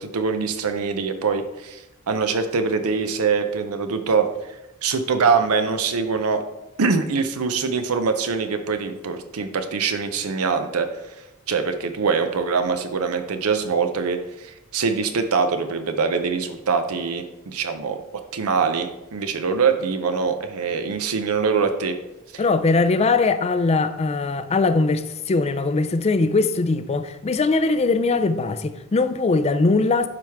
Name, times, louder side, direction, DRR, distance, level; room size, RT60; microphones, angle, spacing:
voice 1, 0.0-6.4 6.8-18.0 18.3-22.0 22.3-22.4, right 5 dB, 80° right, 0.6 m, -23 dB
voice 2, 22.4-30.1, left 3 dB, 30° left, 0.4 m, -21 dB
11.5 x 4.7 x 3.5 m
head